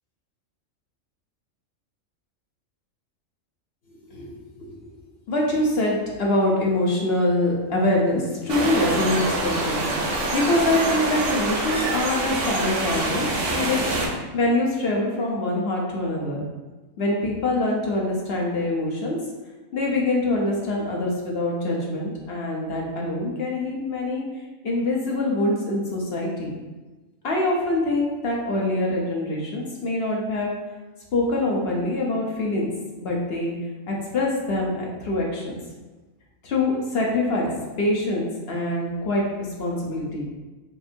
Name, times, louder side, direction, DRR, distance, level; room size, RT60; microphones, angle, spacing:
voice 1, 4.1-4.9 5.3-13.8 14.3-16.4 17.0-19.2 19.7-24.2 24.6-26.6 27.2-30.5 31.1-32.7 32.9-33.5 33.9-35.6 36.4-37.5 37.8-39.2 39.6-40.2, left 2 dB, 55° left, -2 dB, 0.9 m, -24 dB
sound 1, 8.5-14.1, right 2 dB, 70° right, 1.0 m, -25 dB
5.1 x 2.6 x 2.6 m, 1.2 s
omnidirectional pair, 1.4 m